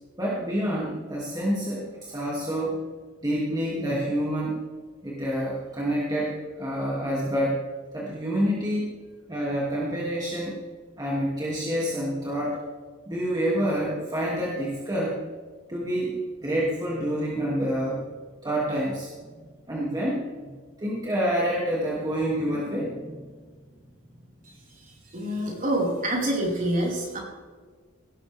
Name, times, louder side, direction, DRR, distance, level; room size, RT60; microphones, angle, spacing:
voice 1, 0.2-2.8 3.2-4.6 5.0-7.6 7.9-8.9 9.3-10.6 11.0-12.6 13.1-15.2 15.7-16.1 16.4-18.0 18.4-20.5 20.8-23.4, equal, 20° right, -6 dB, 2.4 m, -28 dB
voice 2, 25.1-27.2, right 1 dB, 40° right, -3 dB, 4.7 m, -26 dB
18.0 x 13.0 x 3.5 m, 1.5 s
head